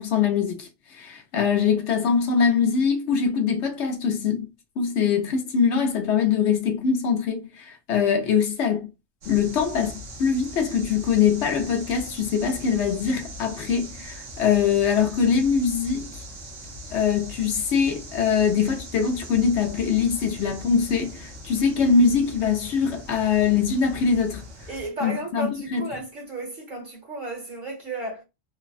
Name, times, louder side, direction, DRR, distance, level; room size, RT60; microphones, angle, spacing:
voice 1, 0.0-4.5 4.8-8.9 9.3-16.2 16.9-24.4 25.0-25.9, left 6 dB, 70° left, 0.9 m, -23 dB
sound 1, 9.2-24.9, equal, 70° right, 1.2 m, -41 dB
voice 2, 24.7-28.2, right 2 dB, 45° right, 1.0 m, -33 dB
3.3 x 2.0 x 2.3 m
omnidirectional pair, 1.3 m